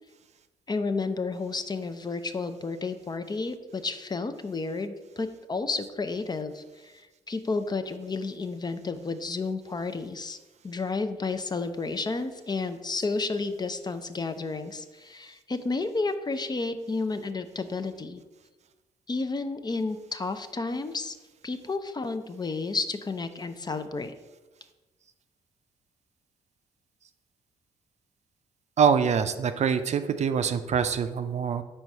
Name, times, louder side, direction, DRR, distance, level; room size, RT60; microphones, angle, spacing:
voice 1, 0.7-10.4 10.6-18.2 19.1-21.2 21.4-24.1, left 3 dB, 30° left, 9 dB, 0.5 m, -31 dB
voice 2, 28.8-31.6, right 7 dB, 50° right, 10 dB, 0.5 m, -24 dB
4.5 x 4.3 x 5.4 m, 1.2 s
hypercardioid pair, 50°, 14 cm